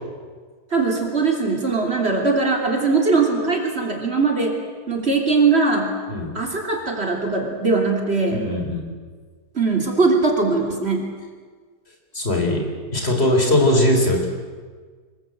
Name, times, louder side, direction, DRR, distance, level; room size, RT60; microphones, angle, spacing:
voice 1, 0.7-4.5 4.9-6.0 6.3-8.4 9.5-11.1, right 4 dB, 40° right, 1 dB, 3.4 m, -20 dB
voice 2, 8.3-8.8 12.1-14.3, left 1 dB, 40° left, 1 dB, 4.4 m, -20 dB
25.5 x 22.5 x 7.8 m, 1.5 s
omnidirectional pair, 1.7 m